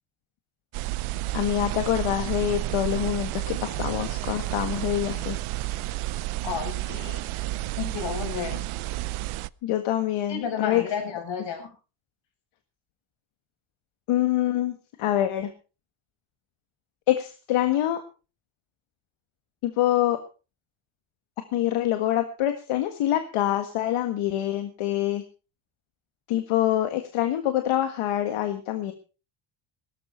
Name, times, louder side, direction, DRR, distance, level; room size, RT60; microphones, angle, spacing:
sound 1, 0.7-9.5, right 17 dB, 85° right, 0.7 m, -31 dB
voice 1, 1.3-5.4 9.6-10.8 14.1-15.5 17.1-18.0 19.6-20.2 21.5-25.2 26.3-28.9, left 12 dB, 85° left, 7 dB, 1.8 m, -25 dB
voice 2, 6.4-7.2 7.8-8.6 10.3-11.7, left 7 dB, 60° left, 4 dB, 6.9 m, -32 dB
17.5 x 13.5 x 4.5 m, 0.34 s
cardioid pair, 150°, 49 cm